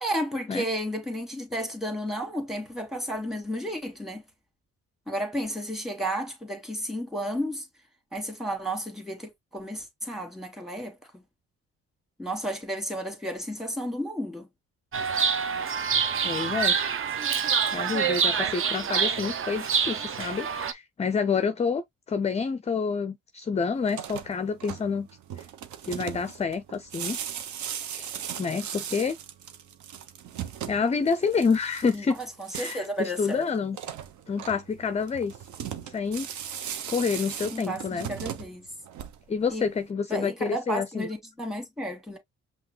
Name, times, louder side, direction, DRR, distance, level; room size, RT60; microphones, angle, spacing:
voice 1, 0.0-4.2 5.1-7.7 8.1-11.0 12.2-14.5 31.9-32.1 32.4-33.4 37.5-38.7 39.5-39.7 40.1-42.2, equal, ahead, 1.8 m, -32 dB
Chirp tweet, 14.9-20.7, right 6 dB, 45° right, 0.7 m, -26 dB
voice 2, 16.2-16.8 17.7-21.8 22.1-25.1 25.8-27.2 27.9-28.1 28.4-29.1 30.7-32.2 32.5-33.8 34.3-35.3 35.9-36.3 36.9-38.1 39.3-41.1, left 5 dB, 20° left, 0.4 m, -28 dB
sound 1, 23.8-39.5, right 9 dB, 70° right, 0.9 m, -38 dB
5.7 x 2.4 x 3.2 m
cardioid pair, 90°, 30 cm